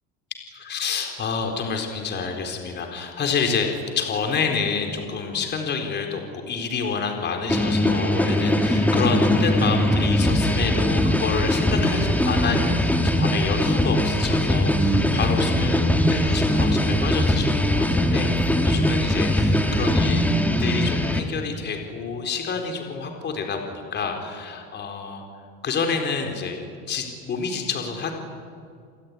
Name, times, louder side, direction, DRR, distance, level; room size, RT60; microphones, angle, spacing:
voice 1, 0.5-3.7 4.0-12.9 13.2-20.3 20.6-25.2 25.6-26.6 26.9-28.1, left 5 dB, 35° left, 4 dB, 4.2 m, -28 dB
sound 1, 7.5-21.2, left 1 dB, 5° left, 2.3 m, -21 dB
29.5 x 20.5 x 9.9 m, 2.2 s
cardioid pair, 145°, 31 cm